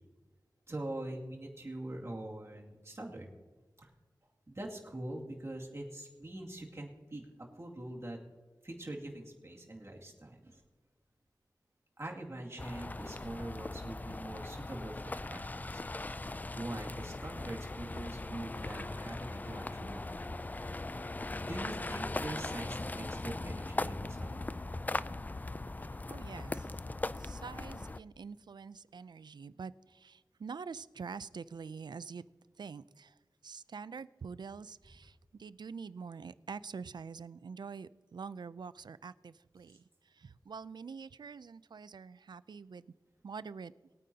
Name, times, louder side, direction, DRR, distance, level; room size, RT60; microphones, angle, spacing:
voice 1, 0.7-3.3 3.8-3.9 4.5-7.3 7.6-8.2 8.6-10.6 12.0-15.8 16.5-20.3 21.4-24.5, right 1 dB, 40° right, -1 dB, 2.3 m, -43 dB
sound 1, 12.6-28.0, left 2 dB, 25° left, 0.3 m, -39 dB
voice 2, 25.8-26.7 27.2-32.3 32.6-33.1 33.4-42.9 43.2-43.7, right 5 dB, 80° right, 16 dB, 0.4 m, -46 dB
22.0 x 9.3 x 2.8 m, 1.3 s
wide cardioid pair, 65°, 7 cm